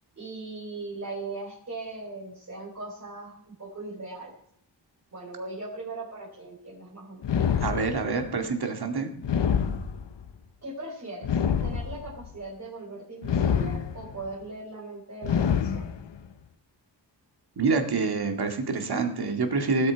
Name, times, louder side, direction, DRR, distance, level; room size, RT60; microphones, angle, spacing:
voice 1, 0.2-4.3 5.1-7.2 10.6-15.9, right 2 dB, 40° right, -5 dB, 4.4 m, -39 dB
sound 1, 7.2-8.3 9.2-10.3 11.2-12.3 13.2-14.3 15.2-16.3, left 7 dB, 80° left, 0.9 m, -27 dB
voice 2, 7.6-9.1 17.6-19.9, right 4 dB, 60° right, 5 dB, 2.2 m, -26 dB
18.5 x 8.7 x 4.6 m, 0.67 s
wide cardioid pair, 115°, 43 cm